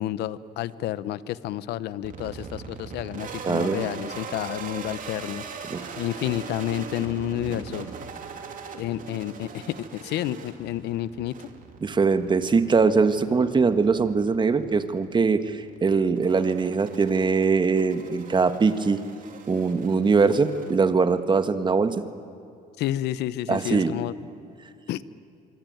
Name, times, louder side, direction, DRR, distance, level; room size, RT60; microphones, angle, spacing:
voice 1, 0.0-5.7 6.0-7.8 8.8-11.5 22.8-24.1 24.9-25.0, left 13 dB, 80° left, 17 dB, 0.9 m, -30 dB
sound 1, 2.0-21.2, right 5 dB, 50° right, 3.1 m, -41 dB
voice 2, 3.5-3.9 5.7-5.8 11.8-19.0 19.5-21.9 23.5-23.9, right 4 dB, 25° right, 10 dB, 1.5 m, -22 dB
25.5 x 24.0 x 9.4 m, 2.6 s
cardioid pair, 110°, 17 cm